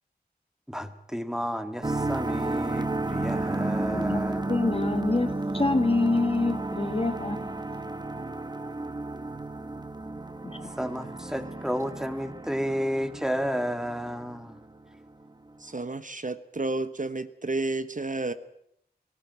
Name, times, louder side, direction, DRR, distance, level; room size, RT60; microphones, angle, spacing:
voice 1, 0.7-4.8 10.8-14.6, equal, 5° right, 1.9 m, -32 dB
sound 1, 1.8-14.6, right 2 dB, 25° right, 1.0 m, -32 dB
voice 2, 3.7-4.2 4.5-7.8 10.4-10.6, left 2 dB, 35° left, 1.5 m, -27 dB
voice 3, 15.6-18.3, right 2 dB, 50° right, 1.1 m, -31 dB
18.5 x 16.0 x 9.5 m
wide cardioid pair, 65°, 17 cm